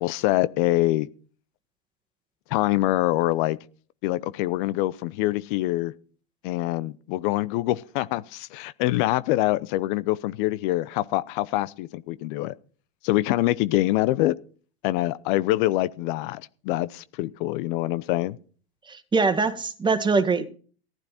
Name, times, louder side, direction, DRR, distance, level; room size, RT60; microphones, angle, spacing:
voice 1, 0.0-1.1 2.5-3.6 4.0-5.9 6.4-12.5 13.0-14.4 14.8-18.4, left 17 dB, 55° left, 16 dB, 0.8 m, -25 dB
voice 2, 18.9-20.4, right 4 dB, 15° right, 10 dB, 1.8 m, -23 dB
15.0 x 12.0 x 4.2 m, 0.41 s
hypercardioid pair, 110°, 30 cm